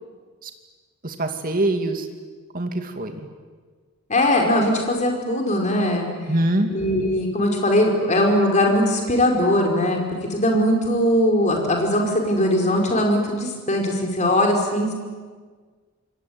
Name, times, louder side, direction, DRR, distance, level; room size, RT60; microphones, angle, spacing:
voice 1, 1.0-2.1 2.5-3.2 6.3-6.7, right 1 dB, 40° right, 5 dB, 2.5 m, -23 dB
voice 2, 4.1-6.1 6.7-14.9, left 1 dB, 30° left, 1 dB, 5.0 m, -20 dB
27.5 x 21.5 x 9.6 m, 1.5 s
head